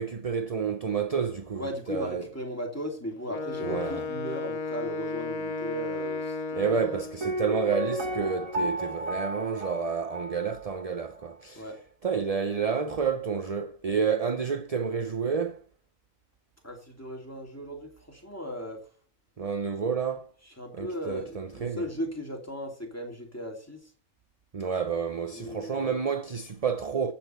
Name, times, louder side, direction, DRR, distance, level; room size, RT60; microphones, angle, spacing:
voice 1, 0.0-2.3 3.6-4.1 6.5-11.6 12.0-15.6 19.4-20.3 20.7-21.9 24.5-27.1, right 6 dB, 35° right, 0.6 m, -30 dB
voice 2, 1.6-6.8 8.6-8.7 11.5-11.8 16.6-18.8 20.6-23.8 25.3-26.0, equal, 10° left, 2.9 m, -37 dB
Wind instrument woodwind instrument, 3.3-7.3, left 4 dB, 90° left, 1.5 m, -34 dB
Piano, 7.2-11.0 11.2-11.3, equal, 70° right, 1.9 m, -33 dB
15.0 x 8.7 x 4.5 m
omnidirectional pair, 1.5 m